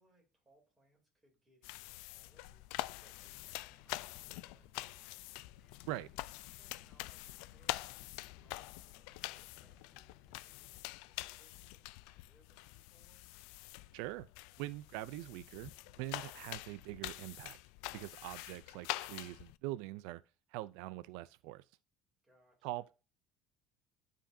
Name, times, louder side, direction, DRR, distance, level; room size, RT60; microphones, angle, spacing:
voice 1, 0.0-5.2 5.8-13.3 22.2-22.8, right 1 dB, 10° right, 2.9 m, -71 dB
sound 1, 1.6-19.6, left 19 dB, 80° left, 0.3 m, -46 dB
sound 2, 3.2-10.9, left 6 dB, 50° left, 1.3 m, -65 dB
voice 2, 13.9-14.3 14.6-17.6 17.9-20.2 20.5-21.6 22.6-22.9, right 16 dB, 85° right, 0.4 m, -43 dB
11.5 x 5.0 x 2.7 m
cardioid pair, 175°, 0 cm